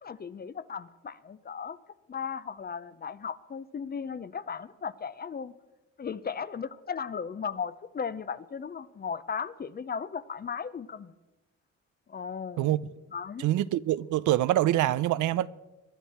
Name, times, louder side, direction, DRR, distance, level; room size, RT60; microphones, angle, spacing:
voice 1, 0.0-1.8 2.1-5.5 6.0-11.1 12.1-12.8 13.1-13.5, left 6 dB, 30° left, 0.6 m, -36 dB
voice 2, 12.6-12.9 13.4-15.5, right 14 dB, 80° right, 0.5 m, -25 dB
22.0 x 11.5 x 4.3 m
cardioid pair, 90°, 30 cm